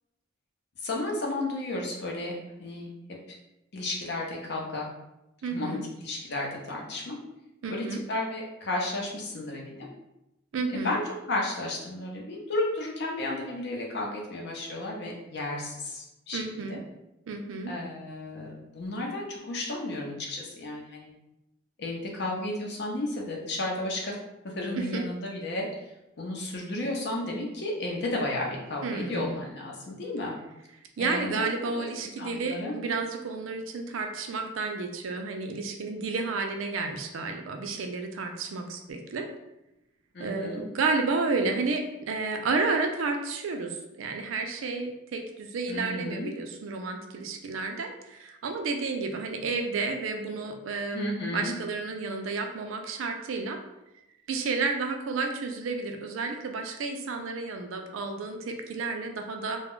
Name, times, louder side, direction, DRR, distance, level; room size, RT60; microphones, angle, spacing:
voice 1, 0.8-3.2 3.7-4.9 5.5-7.2 7.7-9.9 10.8-11.0 11.3-16.8 17.7-21.1 21.8-24.2 24.4-25.7 26.2-30.4 31.0-32.7 40.1-40.6 45.7-46.3 50.9-51.6, left 2 dB, 55° left, -1 dB, 0.6 m, -33 dB
voice 2, 5.4-5.8 7.6-8.0 10.5-11.0 16.3-16.8 17.3-17.7 24.8-25.0 28.8-29.3 31.0-39.3 40.2-53.6 54.3-59.6, right 4 dB, 85° right, 4 dB, 0.4 m, -31 dB
2.2 x 2.0 x 3.6 m, 0.92 s
head